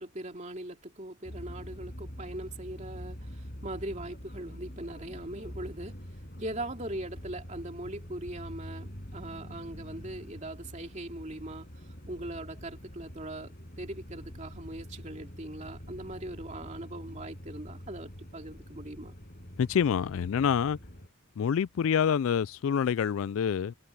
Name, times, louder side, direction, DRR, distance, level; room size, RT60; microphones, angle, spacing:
voice 1, 0.0-6.0 6.4-11.7 12.1-19.2, right 1 dB, 35° right, 2.9 m, -40 dB
sound 1, 1.2-21.1, equal, 40° left, 6.4 m, -45 dB
voice 2, 19.6-20.8 21.4-23.7, left 7 dB, 70° left, 0.3 m, -27 dB
head